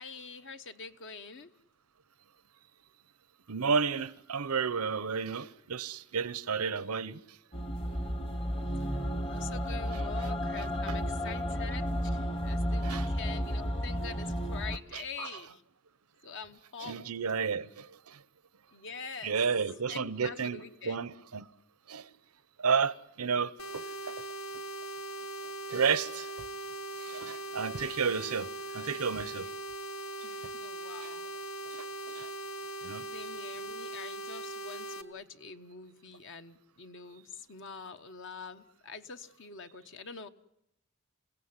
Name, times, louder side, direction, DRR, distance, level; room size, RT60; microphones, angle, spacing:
voice 1, 0.0-1.5 8.8-15.6 16.2-17.0 18.7-19.4 19.9-21.0 30.2-31.3 33.1-40.3, left 5 dB, 60° left, 1.2 m, -45 dB
voice 2, 3.5-7.2 12.8-13.1 14.9-15.3 16.8-17.7 19.2-21.5 21.9-22.0 22.6-23.8 25.7-26.3 27.1-28.5 28.7-29.5 31.0-31.1 31.7-31.8 32.2-32.3 32.8-33.0, right 6 dB, 90° right, 0.9 m, -31 dB
sound 1, 7.5-14.8, equal, 25° left, 1.1 m, -32 dB
sound 2, 23.6-35.0, right 1 dB, 85° left, 1.9 m, -40 dB
28.5 x 17.0 x 9.7 m
head